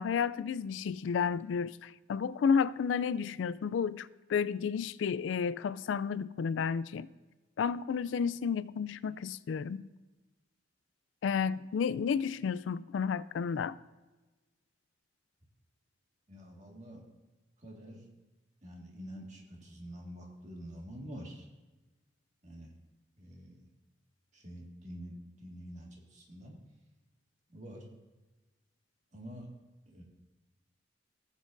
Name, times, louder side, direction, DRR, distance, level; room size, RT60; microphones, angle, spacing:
voice 1, 0.0-7.1 7.6-9.8 11.2-13.7, left 6 dB, 85° left, 0.3 m, -31 dB
voice 2, 16.3-17.0 17.6-18.0 18.6-21.5 22.4-22.7 23.2-23.7 24.3-26.6 27.5-27.9 29.1-29.5 29.9-30.0, equal, 40° right, 1.8 m, -47 dB
17.5 x 7.3 x 2.6 m
head